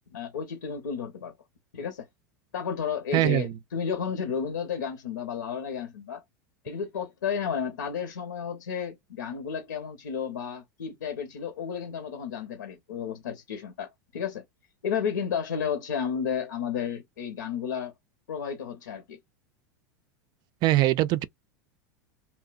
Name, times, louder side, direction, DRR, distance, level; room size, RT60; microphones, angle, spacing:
voice 1, 0.1-1.3 1.7-2.1 2.5-6.2 6.6-14.4 14.8-17.9 18.3-19.2, left 7 dB, 85° left, 0.8 m, -32 dB
voice 2, 3.1-3.5 20.6-21.3, right 16 dB, 45° right, 0.3 m, -22 dB
2.7 x 2.0 x 2.3 m
hypercardioid pair, 95°, 10 cm